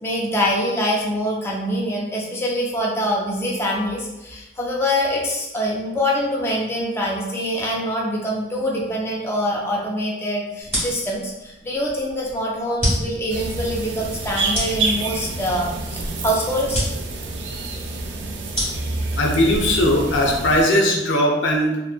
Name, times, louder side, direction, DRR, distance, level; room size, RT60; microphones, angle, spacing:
voice 1, 0.0-16.8, equal, 15° left, -3 dB, 0.3 m, -24 dB
sound 1, 10.6-20.5, equal, 10° right, 1.4 m, -30 dB
sound 2, 13.3-20.6, right 3 dB, 75° right, 0.3 m, -28 dB
voice 2, 19.2-21.9, left 1 dB, 85° left, 0 dB, 0.5 m, -19 dB
2.9 x 2.1 x 2.3 m, 1.0 s
head